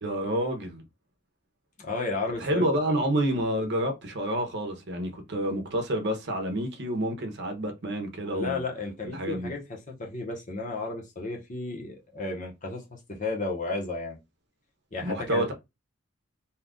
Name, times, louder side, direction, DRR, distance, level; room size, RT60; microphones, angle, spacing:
voice 1, 0.0-0.8 2.4-8.6 9.1-9.5 15.0-15.5, right 1 dB, 55° right, 0.8 m, -28 dB
voice 2, 1.8-2.6 8.3-9.6 10.0-14.2 14.9-15.5, left 3 dB, 35° left, 0.9 m, -33 dB
2.8 x 2.4 x 3.6 m
head